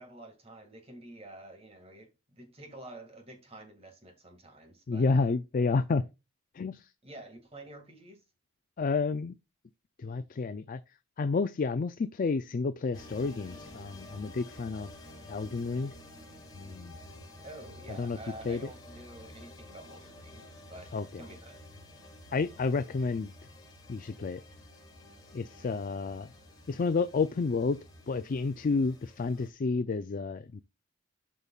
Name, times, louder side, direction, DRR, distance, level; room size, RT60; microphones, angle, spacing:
voice 1, 0.0-5.3 7.0-8.2 17.4-20.4 20.7-20.9 21.2-21.6, right 1 dB, 30° right, 2.1 m, -48 dB
voice 2, 4.9-6.0 6.5-6.9 8.8-9.3 10.0-10.8 11.2-14.9 15.3-15.9 16.5-17.0 17.9-18.2 18.4-18.7 20.9-21.3 22.3-23.3 23.9-24.4 25.3-26.3 26.7-27.8 28.1-30.6, left 4 dB, 45° left, 0.4 m, -30 dB
sound 1, 12.9-29.5, left 1 dB, 20° left, 2.8 m, -51 dB
12.0 x 5.2 x 2.4 m
head